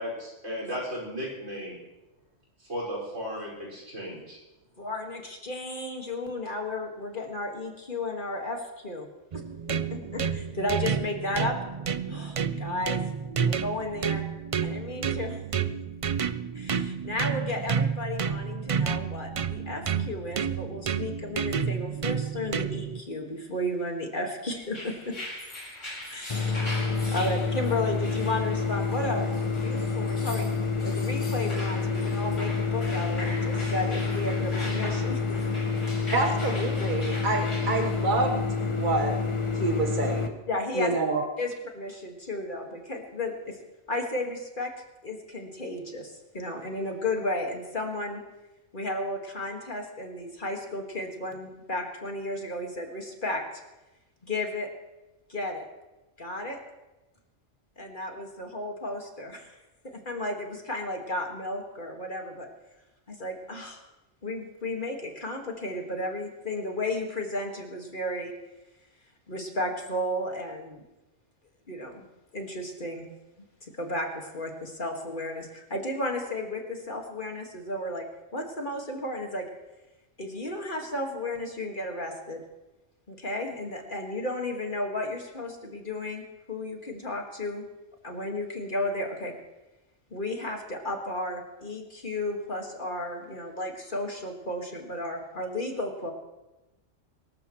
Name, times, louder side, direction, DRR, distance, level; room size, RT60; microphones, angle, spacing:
voice 1, 0.0-1.8 2.7-4.4, equal, 90° right, -4 dB, 6.0 m, -35 dB
voice 2, 4.8-9.1 9.3-9.4 9.7-11.6 12.1-13.0 13.5-14.2 14.6-15.4 16.5-25.2 26.1-26.7 27.1-30.5 30.8-35.4 35.9-36.0 40.5-40.9 41.4-43.6 43.9-44.7 45.0-48.2 48.7-53.6 54.2-54.7 55.3-55.7 56.2-56.6 57.8-59.6 59.8-62.5 63.1-63.8 64.2-68.3 69.3-70.8 71.7-72.1 72.3-73.1 73.6-78.1 78.3-79.5 80.2-82.4 83.1-87.7 88.0-89.3 90.1-96.1, left 1 dB, 45° left, 2 dB, 2.1 m, -33 dB
sound 1, 9.3-23.0, right 6 dB, 60° right, 0.3 m, -30 dB
sound 2, 24.6-38.0, left 1 dB, 85° left, 5.1 m, -41 dB
sound 3, 26.3-40.3, left 4 dB, 30° left, 0.9 m, -28 dB
voice 3, 36.1-38.4 38.7-39.2 39.5-40.4 40.7-41.2, right 3 dB, 40° right, 1 dB, 1.5 m, -27 dB
24.5 x 14.0 x 3.2 m, 1.0 s
omnidirectional pair, 1.2 m